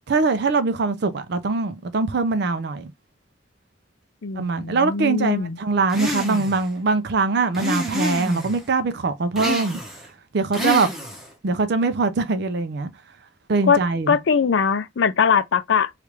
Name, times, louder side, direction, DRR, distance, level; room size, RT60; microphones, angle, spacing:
voice 1, 0.1-2.9 4.4-9.8 10.3-10.9 11.4-12.9 13.5-14.2, right 3 dB, 60° right, 0.5 m, -22 dB
voice 2, 4.2-5.6 13.7-13.8 14.1-15.9, left 6 dB, 70° left, 0.4 m, -21 dB
sound 1, 5.9-6.6 7.5-8.6 9.3-10.1 10.5-11.3, left 1 dB, ahead, 0.9 m, -27 dB
3.2 x 2.4 x 3.0 m
head